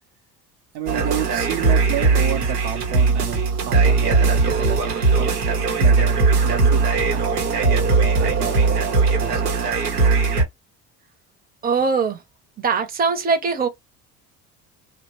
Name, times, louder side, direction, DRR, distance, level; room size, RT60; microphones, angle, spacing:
voice 1, 0.7-4.8 5.2-5.3 5.8-6.8 7.1-7.2 7.6-8.8 9.2-9.6, right 10 dB, 60° right, 0.8 m, -30 dB
sound 1, 0.9-10.4, right 4 dB, 90° right, 0.9 m, -19 dB
voice 2, 11.6-12.2 12.6-13.7, right 5 dB, 20° right, 0.8 m, -21 dB
2.7 x 2.2 x 2.9 m
hypercardioid pair, 65°, 46 cm